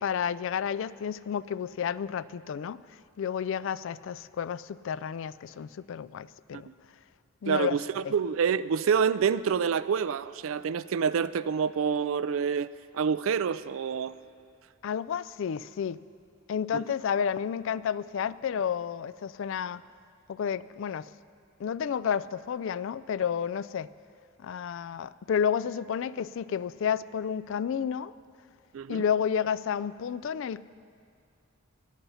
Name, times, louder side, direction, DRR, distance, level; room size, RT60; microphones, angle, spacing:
voice 1, 0.0-2.8 3.2-6.7 7.4-7.8 8.0-8.1 14.8-16.0 16.5-19.8 20.3-21.1 21.6-23.9 24.4-28.1 28.9-30.6, left 7 dB, 65° left, 18 dB, 0.3 m, -31 dB
voice 2, 7.5-12.7 12.9-14.1 16.7-16.8 28.7-29.0, right 6 dB, 75° right, 15 dB, 0.4 m, -27 dB
17.0 x 11.5 x 5.6 m, 2.3 s
head